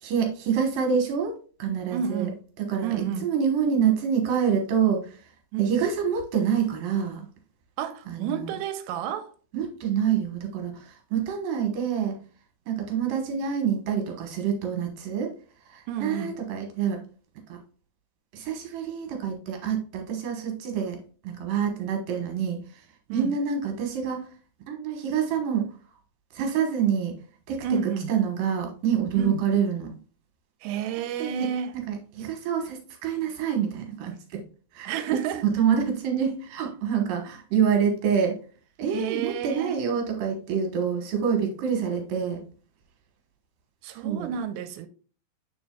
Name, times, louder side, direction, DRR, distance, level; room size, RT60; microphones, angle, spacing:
voice 1, 0.0-2.3 2.6-3.0 3.2-5.2 5.6-7.3 8.1-8.5 9.5-12.2 12.7-15.3 15.7-17.0 17.5-17.6 18.3-22.6 23.1-24.3 24.7-25.7 26.3-27.2 27.5-30.0 31.2-31.5 31.7-34.4 34.7-34.9 35.4-38.4 38.8-42.4 44.0-44.4, right 7 dB, 65° right, 2.4 m, -27 dB
voice 2, 1.9-2.4 2.8-3.3 5.5-5.7 7.8-9.3 15.9-16.4 23.1-23.3 27.6-28.1 29.1-29.4 30.6-31.7 34.8-35.5 38.9-39.8 43.8-44.9, right 8 dB, 85° right, 2.8 m, -30 dB
7.1 x 6.9 x 2.2 m
omnidirectional pair, 5.1 m